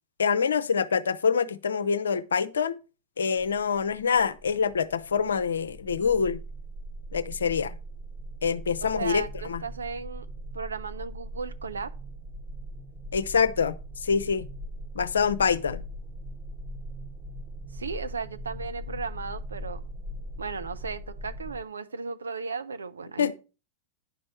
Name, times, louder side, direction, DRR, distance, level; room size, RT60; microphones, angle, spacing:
voice 1, 0.2-2.8 3.2-6.4 7.1-7.7 8.4-9.6 13.1-13.7 14.0-14.5 14.9-15.8 23.2-23.3, left 6 dB, 70° left, 0.6 m, -25 dB
sound 1, 3.4-21.6, right 1 dB, 35° right, 1.5 m, -40 dB
voice 2, 8.9-10.3 10.5-11.9 17.7-19.8 20.4-23.3, right 4 dB, 75° right, 0.6 m, -35 dB
10.0 x 5.4 x 4.4 m
figure-of-eight pair, 90°, 0 cm